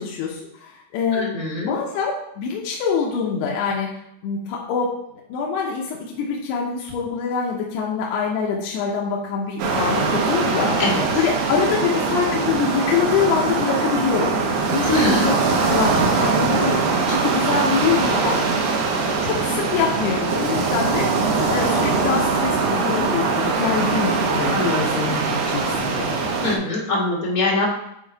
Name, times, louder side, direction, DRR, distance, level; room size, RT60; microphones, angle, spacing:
voice 1, 0.0-3.9 4.2-4.9 5.3-10.7 11.1-14.4 14.7-18.7 19.0-26.2, left 6 dB, 80° left, -2 dB, 2.9 m, -25 dB
voice 2, 1.1-1.7 10.8-11.0 14.9-15.3 24.5-25.0 26.4-27.7, left 2 dB, 40° left, -5 dB, 1.3 m, -23 dB
sound 1, 9.6-26.6, right 4 dB, 70° right, 1.9 m, -22 dB
9.2 x 3.8 x 4.6 m, 0.80 s
omnidirectional pair, 4.7 m